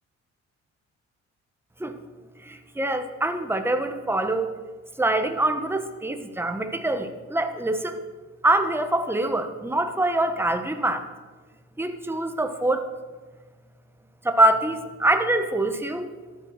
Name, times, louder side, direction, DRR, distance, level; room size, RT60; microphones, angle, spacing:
voice 1, 2.4-4.5 5.0-8.0 8.4-11.0 11.8-12.9 14.2-16.1, right 1 dB, 10° right, 7 dB, 1.4 m, -24 dB
14.0 x 9.5 x 6.6 m, 1.3 s
cardioid pair, 90°, 30 cm